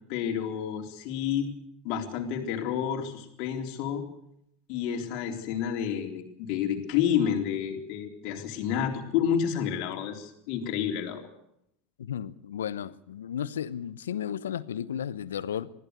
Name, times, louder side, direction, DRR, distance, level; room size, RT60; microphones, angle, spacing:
voice 1, 0.1-1.5 1.8-4.0 4.7-11.3, left 8 dB, 55° left, 3.8 m, -30 dB
voice 2, 12.0-15.7, left 9 dB, 75° left, 0.9 m, -34 dB
21.0 x 15.0 x 8.2 m
hypercardioid pair, 80°, 0 cm